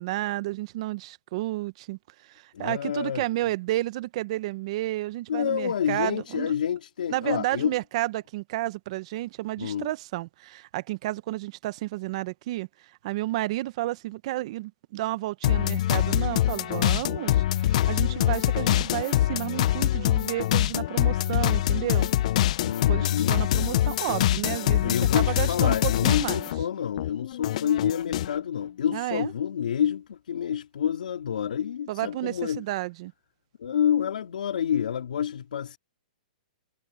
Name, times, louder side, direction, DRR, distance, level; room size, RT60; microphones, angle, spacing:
voice 1, 0.0-6.5 7.1-12.7 13.0-22.1 22.9-26.5 28.9-29.3 31.9-33.1, right 17 dB, 45° right, 0.9 m, -31 dB
voice 2, 2.5-3.2 5.3-7.8 9.6-9.9 22.6-23.4 24.8-32.6 33.6-35.8, left 9 dB, 80° left, 3.8 m, -28 dB
sound 1, 15.4-26.6 27.0-28.4, left 13 dB, 50° left, 0.5 m, -24 dB
hypercardioid pair, 155°, 5 cm